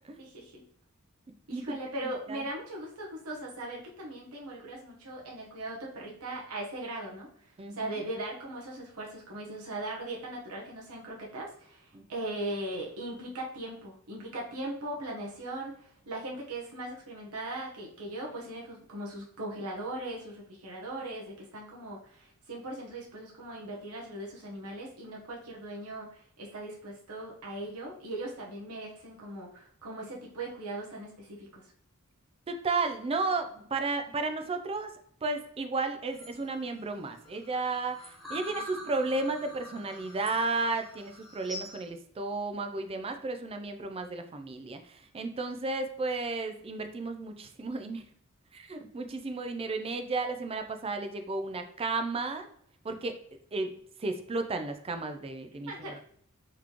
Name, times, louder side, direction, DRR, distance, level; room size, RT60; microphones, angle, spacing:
voice 1, 0.2-0.6 1.5-31.7 55.7-55.9, right 1 dB, 85° right, -2 dB, 0.9 m, -39 dB
voice 2, 32.5-34.9 35.2-44.8 45.1-48.0 48.5-52.5 52.8-53.2 53.5-56.0, right 3 dB, 25° right, 7 dB, 0.4 m, -33 dB
sound 1, 36.1-41.8, left 1 dB, ahead, 0.8 m, -45 dB
4.1 x 3.1 x 2.8 m, 0.63 s
head